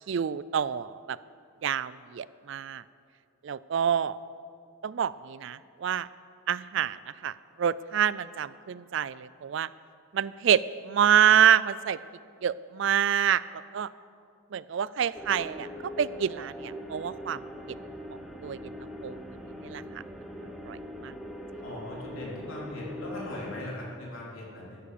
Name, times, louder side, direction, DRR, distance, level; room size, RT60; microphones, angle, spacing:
voice 1, 0.1-1.2 1.6-2.8 3.4-4.2 4.8-6.1 6.5-9.7 10.1-12.0 12.4-13.4 13.7-13.9 14.5-17.4 18.4-18.6 19.0-19.2 19.6-19.8 20.7-20.8 21.0-21.1, right 8 dB, 60° right, 18 dB, 0.3 m, -27 dB
sound 1, 15.1-23.6, equal, ahead, 0.9 m, -41 dB
voice 2, 21.6-24.8, left 1 dB, 75° left, -3 dB, 3.5 m, -39 dB
13.5 x 10.5 x 6.7 m, 2.3 s
head